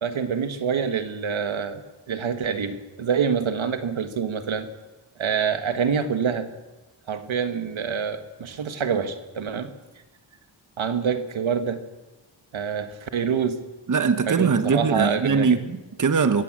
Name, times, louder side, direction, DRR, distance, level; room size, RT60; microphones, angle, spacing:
voice 1, 0.0-4.7 5.2-6.5 7.1-9.7 10.8-11.8 12.5-13.6 14.3-15.6, right 6 dB, 80° right, 9 dB, 1.7 m, -26 dB
voice 2, 13.9-16.4, right 5 dB, 40° right, 10 dB, 1.1 m, -21 dB
23.5 x 16.0 x 7.5 m, 1.1 s
wide cardioid pair, 115°, 46 cm